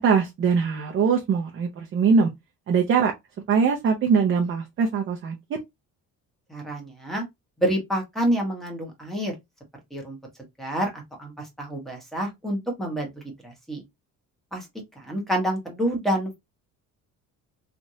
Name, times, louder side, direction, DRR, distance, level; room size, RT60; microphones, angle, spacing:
voice 1, 0.0-2.3 2.7-3.1 3.5-5.6, right 5 dB, 40° right, 0.6 m, -22 dB
voice 2, 6.5-7.2 7.6-9.3 9.9-10.2 10.6-13.8 14.5-14.7 15.0-16.4, right 1 dB, ahead, 1.0 m, -28 dB
3.2 x 2.5 x 2.6 m
cardioid pair, 170°, 32 cm